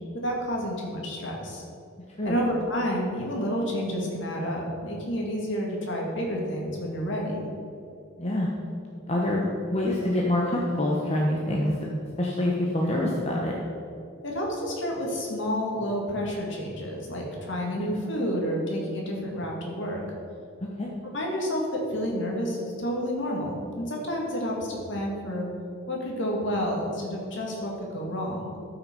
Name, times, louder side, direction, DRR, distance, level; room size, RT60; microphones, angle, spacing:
voice 1, 0.1-1.6 2.2-7.5 14.2-20.0 21.0-25.5 25.9-28.5, equal, 60° left, -1 dB, 2.3 m, -30 dB
voice 2, 8.2-8.5 9.1-11.9 12.2-13.5 20.8-20.9, left 1 dB, 30° left, -3 dB, 1.0 m, -26 dB
13.0 x 6.0 x 5.5 m, 2.6 s
head